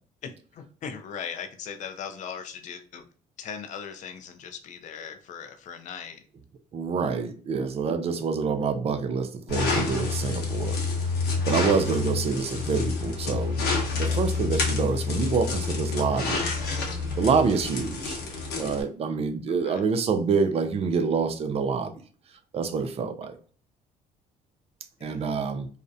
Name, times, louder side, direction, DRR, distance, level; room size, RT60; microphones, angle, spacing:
voice 1, 0.2-3.0 3.4-6.2 14.5-14.7 19.6-19.8 25.0-25.2, left 7 dB, 45° left, 0.4 m, -39 dB
voice 2, 6.7-10.8 11.1-11.2 11.5-13.6 13.9-16.5 17.2-18.2 18.5-21.9 22.5-23.4 25.0-25.7, right 5 dB, 35° right, 0.4 m, -26 dB
sound 1, 9.5-18.8, left 4 dB, 75° left, 0.8 m, -28 dB
2.4 x 2.1 x 2.5 m
cardioid pair, 110°, 17 cm